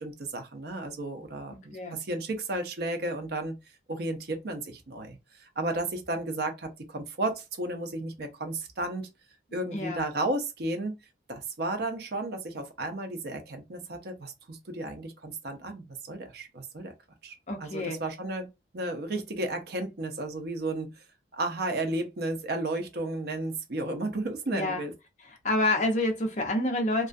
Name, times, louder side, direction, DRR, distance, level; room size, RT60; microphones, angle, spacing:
voice 1, 0.0-3.6 3.9-9.1 9.5-11.0 11.3-16.9 17.2-18.5 18.7-20.9 21.3-24.9, right 2 dB, 55° right, 0.6 m, -33 dB
voice 2, 9.7-10.0 17.5-18.0 24.5-24.8 25.4-27.1, left 1 dB, 40° left, 0.6 m, -28 dB
2.4 x 2.2 x 2.5 m
head